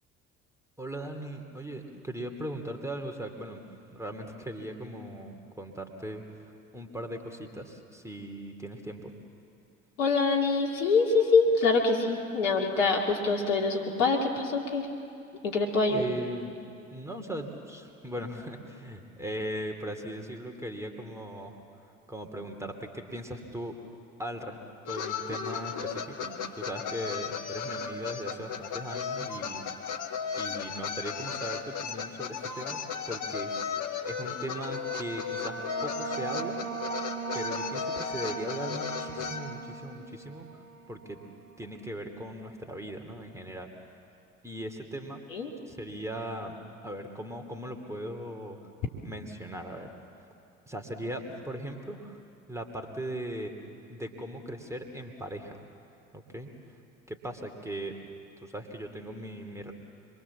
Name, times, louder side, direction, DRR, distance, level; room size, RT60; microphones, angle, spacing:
voice 1, 0.8-3.6 3.9-9.1 15.9-16.6 16.9-23.8 24.2-24.6 24.8-29.9 30.4-33.7 34.0-36.6 37.3-41.2 41.6-43.7 44.4-45.2 45.7-46.6 46.8-48.7 49.0-49.9 50.2-50.3 50.7-52.2 52.5-53.5 53.9-55.6 56.1-56.8 57.1-58.0 58.4-59.7, right 1 dB, 5° right, 4 dB, 3.0 m, -39 dB
voice 2, 10.0-14.9 15.4-16.0 45.3-45.5, left 4 dB, 70° left, 0 dB, 2.7 m, -25 dB
sound 1, 24.9-39.4, left 6 dB, 50° left, 1.7 m, -35 dB
sound 2, 34.5-41.7, right 5 dB, 30° right, 1.6 m, -39 dB
26.0 x 23.0 x 7.3 m, 2.6 s
figure-of-eight pair, 55°, 39 cm